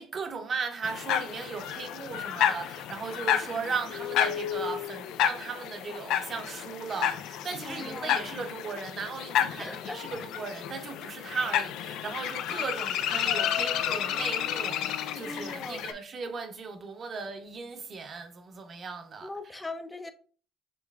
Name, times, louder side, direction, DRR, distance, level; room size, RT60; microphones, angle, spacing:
voice 1, 0.0-19.7, right 4 dB, 50° right, 0.8 m, -37 dB
sound 1, 0.8-15.9, left 10 dB, 75° left, 0.3 m, -31 dB
voice 2, 7.6-8.3 9.6-10.3 15.2-15.9 19.2-20.1, left 2 dB, 15° left, 0.5 m, -40 dB
5.4 x 3.1 x 2.4 m
supercardioid pair, 70°, 0 cm